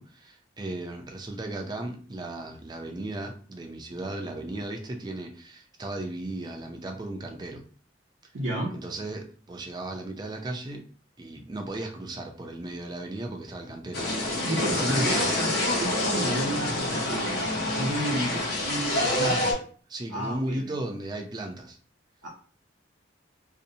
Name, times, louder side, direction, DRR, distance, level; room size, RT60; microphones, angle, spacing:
voice 1, 0.0-7.6 8.7-10.8 11.2-15.4 19.2-19.6 19.9-21.8, right 1 dB, 20° right, 3 dB, 0.4 m, -35 dB
voice 2, 8.3-8.7 14.4-19.4 20.1-20.7 22.2-22.3, right 1 dB, 75° right, -4 dB, 0.6 m, -32 dB
sound 1, 13.9-19.5, left 1 dB, 60° left, 0.7 m, -27 dB
2.6 x 2.0 x 2.6 m, 0.42 s
head